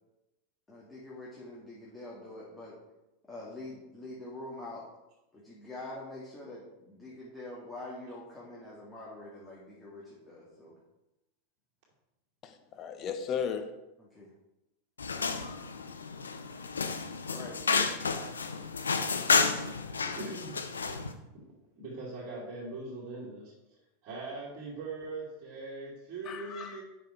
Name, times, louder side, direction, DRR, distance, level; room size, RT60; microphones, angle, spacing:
voice 1, 0.7-2.7 3.3-4.8 5.3-10.7 14.0-14.3 17.3-18.5, left 2 dB, 10° left, 2.3 m, -45 dB
voice 2, 12.4-13.7 26.3-26.8, left 7 dB, 35° left, 1.0 m, -35 dB
sound 1, 15.0-21.1, left 5 dB, 80° left, 0.7 m, -31 dB
voice 3, 18.9-19.3 19.5-20.8 21.3-21.4 21.7-23.5 24.0-26.8, right 3 dB, 45° right, 2.9 m, -41 dB
7.7 x 6.0 x 4.7 m
figure-of-eight pair, 85°, 0 cm